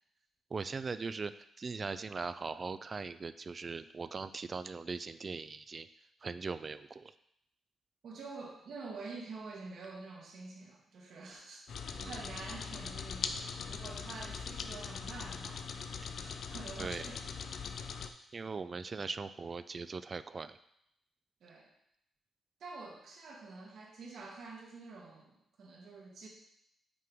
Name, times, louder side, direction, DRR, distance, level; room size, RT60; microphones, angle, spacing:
voice 1, 0.5-5.9 6.2-7.1 11.9-12.2 16.8-17.1 18.3-20.6, right 4 dB, 40° right, 13 dB, 0.3 m, -40 dB
voice 2, 8.0-15.6 16.2-17.3 21.4-21.7 22.6-26.3, right 3 dB, 70° right, -1 dB, 1.5 m, -47 dB
sound 1, 11.7-18.1, left 6 dB, 65° left, 0.4 m, -41 dB
6.1 x 3.7 x 4.6 m, 0.76 s
cardioid pair, 95°, 0 cm